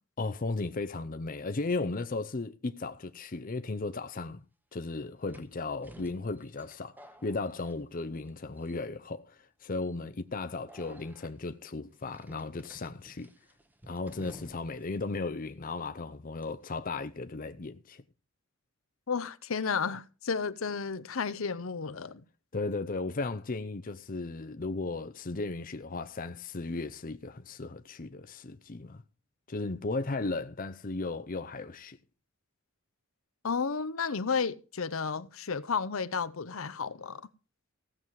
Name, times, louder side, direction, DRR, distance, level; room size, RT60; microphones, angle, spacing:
voice 1, 0.2-4.4 4.7-6.9 7.2-13.3 13.9-18.0 22.5-29.0 29.5-32.0, left 3 dB, 40° left, 0.6 m, -35 dB
sound 1, 3.9-4.0 5.3-8.3 8.6-9.1 9.7-9.9 10.7-11.3 12.1-14.9 15.1-15.2 16.4-16.7, right 1 dB, 10° right, 1.0 m, -54 dB
voice 2, 19.1-22.2 33.4-37.2, left 5 dB, 70° left, 0.8 m, -32 dB
16.0 x 7.4 x 4.7 m
head